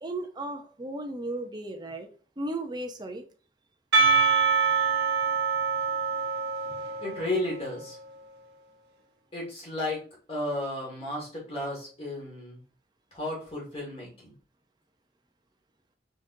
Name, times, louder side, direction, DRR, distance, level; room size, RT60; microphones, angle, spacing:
voice 1, 0.0-2.1 2.4-3.2, right 2 dB, 25° right, 5 dB, 0.5 m, -35 dB
Percussion, 3.9-7.8, right 5 dB, 65° right, 1.1 m, -25 dB
voice 2, 7.0-8.0 9.3-10.0 10.3-12.6 13.1-14.3, left 1 dB, 30° left, -3 dB, 1.9 m, -33 dB
5.1 x 3.8 x 2.6 m, 0.41 s
head